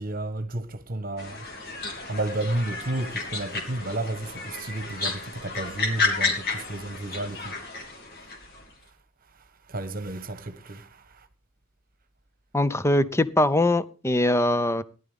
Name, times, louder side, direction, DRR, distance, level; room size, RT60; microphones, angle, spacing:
voice 1, 0.0-1.4 2.1-7.5 9.7-11.3, right 2 dB, 45° right, 1.2 m, -32 dB
sound 1, 1.2-8.6, left 3 dB, 45° left, 3.2 m, -32 dB
voice 2, 12.5-14.8, left 1 dB, 15° left, 0.6 m, -22 dB
18.0 x 11.5 x 3.6 m
head